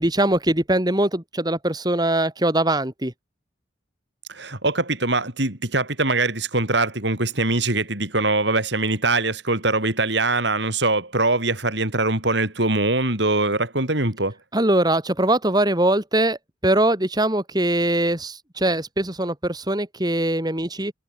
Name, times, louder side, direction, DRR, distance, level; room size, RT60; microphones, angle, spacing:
voice 1, 0.0-3.1 14.5-20.9, right 1 dB, 20° right, 3.0 m, -22 dB
voice 2, 4.3-14.3, right 2 dB, 65° right, 4.8 m, -22 dB
head